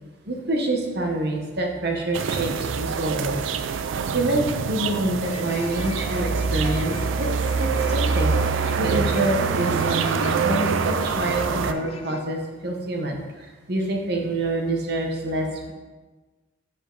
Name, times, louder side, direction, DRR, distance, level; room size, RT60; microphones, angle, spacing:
voice 1, 0.3-3.4 4.1-7.3 7.6-13.2 13.7-15.7, right 1 dB, 55° right, 1 dB, 1.0 m, -26 dB
sound 1, 2.1-11.7, right 5 dB, 85° right, 0.4 m, -25 dB
sound 2, 5.2-12.2, left 3 dB, 30° left, 0.3 m, -38 dB
7.0 x 5.2 x 3.9 m, 1.3 s
head